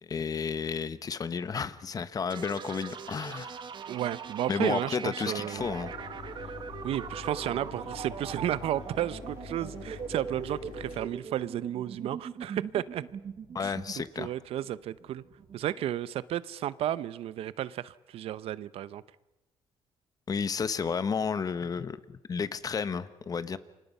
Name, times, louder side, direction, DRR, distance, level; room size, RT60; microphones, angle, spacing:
voice 1, 0.0-3.6 4.5-5.9 13.5-14.3 20.3-23.6, left 6 dB, 40° left, 1.1 m, -32 dB
sound 1, 2.3-15.9, right 6 dB, 50° right, 1.6 m, -41 dB
voice 2, 3.9-5.7 6.8-13.0 13.6-15.2 15.5-19.0, right 12 dB, 75° right, 0.8 m, -33 dB
Mechanisms, 5.6-11.0, left 5 dB, 85° left, 4.9 m, -45 dB
28.5 x 25.0 x 5.5 m
cardioid pair, 105°, 10 cm